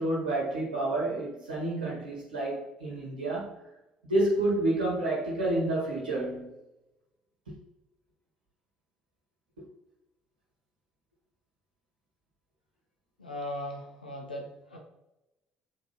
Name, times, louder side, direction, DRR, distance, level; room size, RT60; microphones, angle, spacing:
voice 1, 0.0-3.5 4.0-6.5 9.6-9.7, right 2 dB, 85° right, -5 dB, 1.6 m, -29 dB
voice 2, 13.2-14.8, left 1 dB, 90° left, 0 dB, 0.9 m, -38 dB
6.8 x 5.3 x 2.9 m, 0.95 s
figure-of-eight pair, 50°, 5 cm